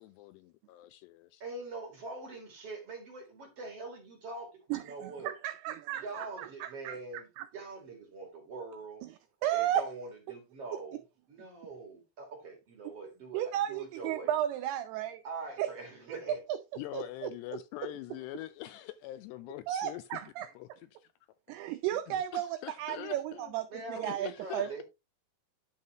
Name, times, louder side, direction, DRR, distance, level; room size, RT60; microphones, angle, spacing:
voice 1, 0.0-1.4 16.8-20.2 20.6-20.7 21.0-21.1 21.9-23.5 24.0-24.8, left 15 dB, 85° left, 2.5 m, -44 dB
voice 2, 1.4-5.3 6.0-7.3 7.5-9.0 9.5-11.0 11.3-14.3 15.2-16.4 23.7-24.8, right 3 dB, 50° right, 2.0 m, -43 dB
voice 3, 4.7-7.5 9.4-9.9 13.3-15.2 15.6-15.7 16.3-16.6 16.9-17.3 17.8-17.9 19.7-20.5 21.5-24.8, right 11 dB, 90° right, 2.2 m, -34 dB
10.5 x 5.6 x 2.9 m
omnidirectional pair, 5.2 m